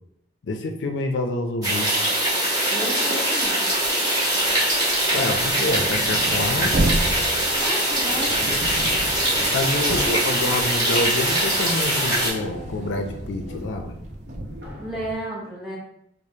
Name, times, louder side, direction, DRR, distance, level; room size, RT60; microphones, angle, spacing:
voice 1, 0.5-1.9 5.1-6.8 9.5-14.0, left 2 dB, 85° left, 5 dB, 0.4 m, -27 dB
sound 1, 1.6-12.3, right 1 dB, 20° right, 1.3 m, -22 dB
voice 2, 2.7-3.6 7.5-8.3 14.8-15.8, right 1 dB, 5° right, -5 dB, 0.8 m, -32 dB
sound 2, 4.9-11.0 11.4-14.7, right 2 dB, 40° right, 0.3 m, -31 dB
sound 3, 8.0-15.1, equal, 80° right, 0.8 m, -40 dB
4.9 x 2.0 x 2.7 m, 0.75 s
head